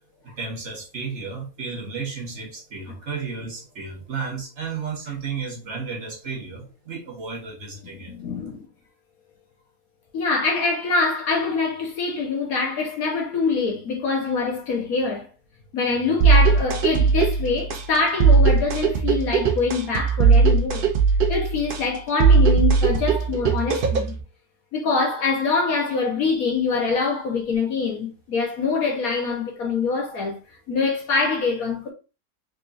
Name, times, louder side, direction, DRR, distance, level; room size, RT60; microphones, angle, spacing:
voice 1, 0.2-8.1, right 5 dB, 50° right, 1.1 m, -33 dB
voice 2, 8.1-8.7 10.1-15.3 15.7-20.8 21.3-24.2 24.7-30.4 30.7-31.9, left 4 dB, 65° left, 1.3 m, -24 dB
sound 1, 16.2-24.2, right 5 dB, 75° right, 0.5 m, -19 dB
3.7 x 3.6 x 2.5 m
omnidirectional pair, 1.8 m